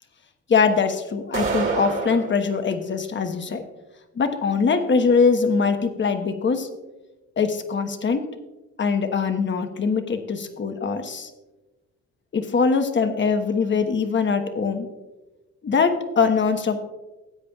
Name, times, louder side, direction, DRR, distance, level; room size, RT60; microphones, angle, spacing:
voice 1, 0.5-3.6 4.2-6.7 7.4-8.2 8.8-11.3 12.3-14.9 15.6-16.8, left 5 dB, 40° left, 7 dB, 1.1 m, -22 dB
sound 1, 1.3-2.3, right 4 dB, 40° right, 2.2 m, -26 dB
15.5 x 8.3 x 2.4 m, 1.1 s
cardioid pair, 90°, 30 cm